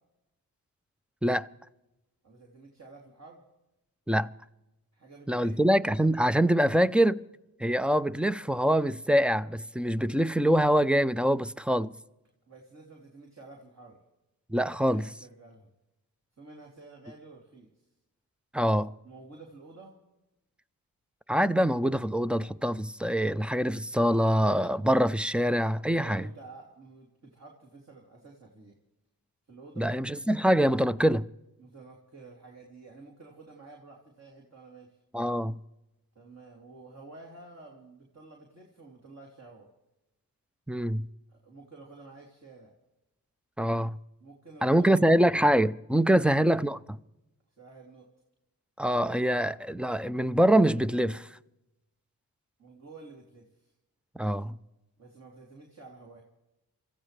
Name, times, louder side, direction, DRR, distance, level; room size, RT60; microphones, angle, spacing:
voice 1, 2.2-3.4 4.9-5.5 12.5-14.0 14.9-15.7 16.4-17.7 19.0-20.0 26.0-28.7 29.5-29.9 31.6-35.0 36.1-39.7 41.3-42.7 44.2-45.2 46.0-46.3 47.6-48.1 52.6-53.7 55.0-56.2, right 3 dB, 45° right, 3.2 m, -50 dB
voice 2, 5.3-7.2 7.6-11.9 14.5-15.1 18.5-18.9 21.3-26.2 29.8-31.3 35.1-35.6 40.7-41.1 43.6-44.0 44.6-47.0 48.8-51.3 54.2-54.6, equal, 5° right, 0.5 m, -24 dB
26.0 x 15.0 x 3.3 m
cardioid pair, 50°, 38 cm